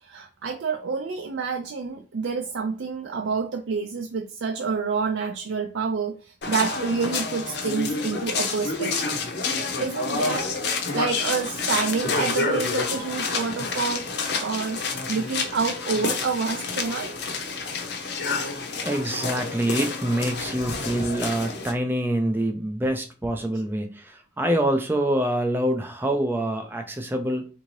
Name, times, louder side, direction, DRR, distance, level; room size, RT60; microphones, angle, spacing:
voice 1, 0.0-9.2 9.8-14.1 14.4-14.8 15.1-17.1, right 5 dB, 80° right, 4 dB, 0.4 m, -28 dB
sound 1, 6.4-21.7, left 4 dB, 60° left, 0.7 m, -29 dB
voice 2, 18.8-27.5, right 1 dB, 10° right, 4 dB, 0.3 m, -25 dB
3.7 x 2.7 x 3.1 m, 0.34 s
head